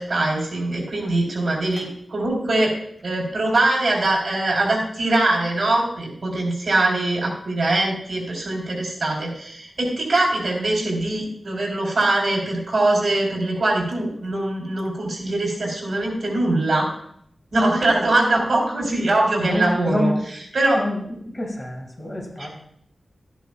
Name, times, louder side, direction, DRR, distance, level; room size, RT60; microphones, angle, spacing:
voice 1, 0.0-2.7 3.0-16.9 17.5-20.8 22.4-22.5, right 2 dB, 60° right, -2 dB, 4.3 m, -22 dB
voice 2, 19.4-20.1 20.8-21.0 21.3-22.5, left 1 dB, 30° left, 1 dB, 2.4 m, -26 dB
13.5 x 10.0 x 2.5 m, 0.69 s
wide cardioid pair, 90°, 0 cm